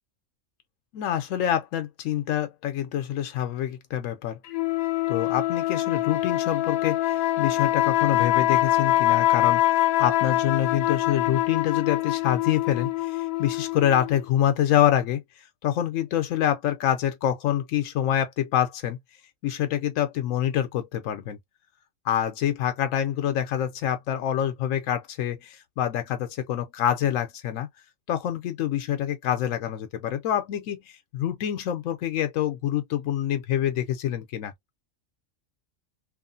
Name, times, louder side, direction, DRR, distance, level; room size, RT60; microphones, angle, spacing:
voice 1, 0.9-4.4 5.1-19.0 19.4-21.4 22.0-27.7 28.1-34.5, left 11 dB, 85° left, 1.0 m, -26 dB
sound 1, 4.5-14.2, left 14 dB, 65° left, 0.7 m, -24 dB
3.0 x 2.4 x 2.5 m
omnidirectional pair, 1.3 m